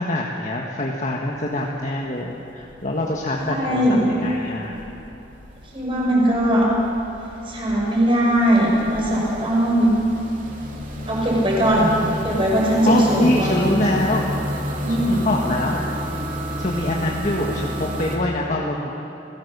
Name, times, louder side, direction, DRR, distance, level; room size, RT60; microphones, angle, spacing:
voice 1, 0.0-4.8 12.3-12.4 12.9-14.3 15.0-15.8 16.6-18.9, left 1 dB, 40° left, -1 dB, 1.7 m, -24 dB
sound 1, 1.2-1.7 1.9-18.2, equal, 45° right, 3.1 m, -32 dB
voice 2, 3.4-4.1 5.7-6.7 7.5-9.9 11.1-11.9 12.2-13.6 14.8-15.2, equal, 30° right, -3 dB, 6.3 m, -19 dB
29.0 x 17.5 x 6.9 m, 2.9 s
head